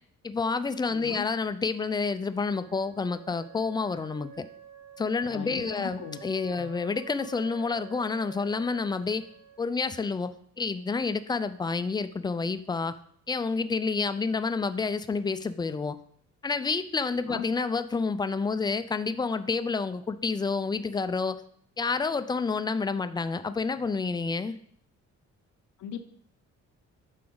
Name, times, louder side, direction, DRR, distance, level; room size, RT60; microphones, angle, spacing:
voice 1, 0.2-4.4 5.0-9.2 9.6-12.9 13.3-16.0 16.4-21.4 21.8-24.6, left 4 dB, 15° left, 12 dB, 0.4 m, -29 dB
voice 2, 0.9-1.3 5.3-6.2 6.6-6.7 17.3-17.5 25.8-26.0, left 9 dB, 75° left, 9 dB, 0.8 m, -38 dB
Wind instrument woodwind instrument, 2.3-10.0, right 7 dB, 65° right, 2.1 m, -48 dB
8.6 x 5.9 x 3.9 m, 0.63 s
cardioid pair, 135°, 29 cm